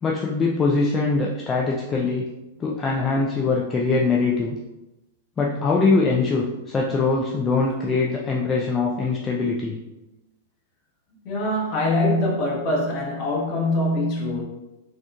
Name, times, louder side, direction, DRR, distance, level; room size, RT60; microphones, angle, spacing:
voice 1, 0.0-2.2 2.6-4.6 5.4-9.8, left 3 dB, 20° left, -3 dB, 0.4 m, -22 dB
voice 2, 11.2-14.4, left 1 dB, 45° left, -2 dB, 1.1 m, -23 dB
4.1 x 2.9 x 2.3 m, 1.0 s
hypercardioid pair, 105°, 0 cm